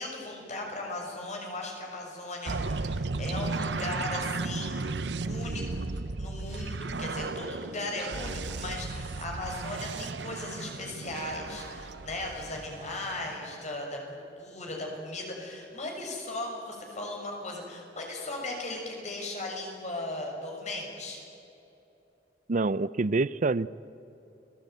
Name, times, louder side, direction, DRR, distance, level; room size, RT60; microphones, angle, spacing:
voice 1, 0.0-4.9 5.2-21.2, left 2 dB, 40° left, 1 dB, 6.7 m, -37 dB
sound 1, 2.5-13.6, right 3 dB, 75° right, 0.8 m, -35 dB
voice 2, 22.5-23.7, right 3 dB, 45° right, 18 dB, 0.5 m, -26 dB
30.0 x 21.0 x 9.4 m, 3.0 s
head